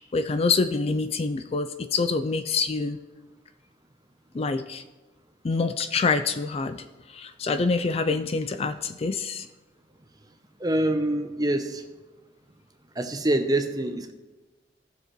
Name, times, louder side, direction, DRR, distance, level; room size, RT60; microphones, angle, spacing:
voice 1, 0.1-3.0 4.3-4.8 5.4-6.8 7.1-9.5, left 4 dB, 35° left, 10 dB, 0.4 m, -26 dB
voice 2, 10.6-11.8 13.0-14.1, right 1 dB, 20° right, 7 dB, 0.7 m, -25 dB
15.5 x 6.4 x 3.1 m, 1.2 s
head